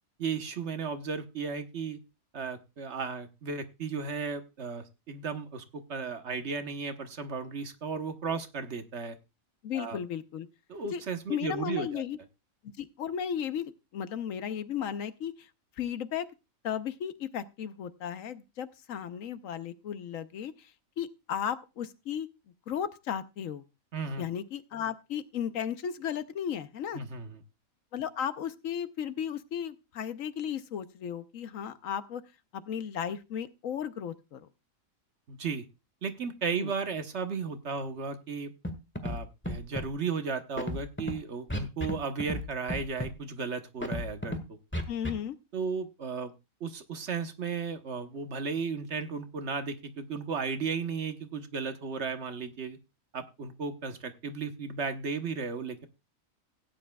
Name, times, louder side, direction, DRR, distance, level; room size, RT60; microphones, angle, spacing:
voice 1, 0.2-2.0 2.3-9.2 9.7-10.0 10.7-12.0 23.9-24.2 26.9-27.4 35.3-35.6 36.0-38.5 39.0-44.6 45.5-46.3 46.6-52.8 53.1-55.9, right 5 dB, 55° right, 8 dB, 1.3 m, -35 dB
voice 2, 9.6-10.5 10.9-11.0 11.3-12.2 12.8-15.5 15.8-16.3 16.6-20.7 21.0-22.3 22.7-23.6 24.2-27.0 27.9-32.2 32.5-34.5 36.5-36.7 44.9-45.4, left 8 dB, 75° left, 12 dB, 1.2 m, -35 dB
Scratching (performance technique), 38.6-38.7 39.0-39.2 39.4-39.9 40.6-41.1 41.5-41.9 42.2-42.4 42.7-43.1 43.8-44.4 44.7-45.1, left 1 dB, 10° left, 1.4 m, -32 dB
17.0 x 9.8 x 2.3 m, 0.26 s
omnidirectional pair, 1.4 m